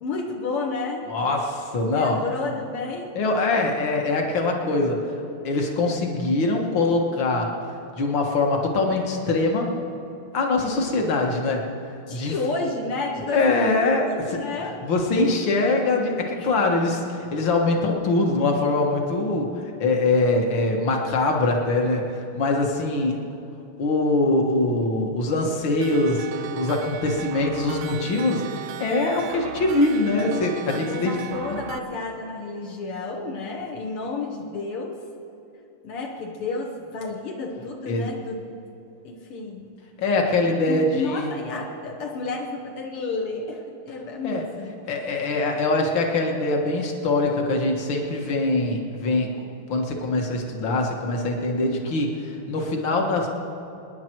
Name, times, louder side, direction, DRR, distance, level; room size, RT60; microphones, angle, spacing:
voice 1, 0.0-1.1 1.9-3.1 12.1-13.8 14.1-14.8 16.4-16.5 30.7-35.0 35.8-38.6 39.0-39.7 40.7-45.0, left 3 dB, 80° left, 0 dB, 2.2 m, -31 dB
voice 2, 1.1-2.2 3.2-5.0 5.4-7.5 8.0-9.7 10.3-11.6 12.1-12.3 13.3-14.4 14.8-19.5 19.8-23.2 23.8-31.2 37.9-38.1 40.0-41.3 44.2-44.4 44.9-49.3 49.7-53.3, left 2 dB, 60° left, 1 dB, 2.3 m, -23 dB
sound 1, 25.8-31.8, right 9 dB, 75° right, 1.4 m, -37 dB
26.5 x 10.5 x 4.6 m, 2.7 s
omnidirectional pair, 2.4 m